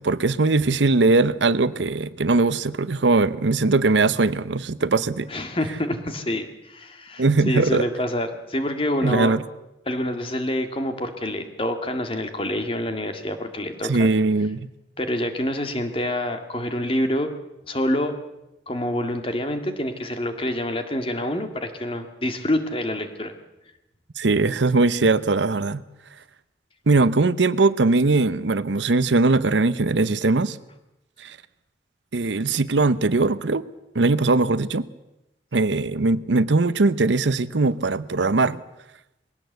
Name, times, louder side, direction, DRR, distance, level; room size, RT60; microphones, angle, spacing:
voice 1, 0.0-5.3 7.2-7.8 9.0-9.4 13.9-14.7 24.2-25.8 26.9-30.6 31.2-31.4 32.1-33.7 33.9-34.9 35.5-38.6, right 3 dB, 85° right, 0.8 m, -20 dB
voice 2, 5.3-9.3 9.9-14.1 15.0-17.3 17.7-18.1 18.7-23.3, left 1 dB, 30° left, 2.0 m, -27 dB
21.0 x 17.0 x 8.0 m
head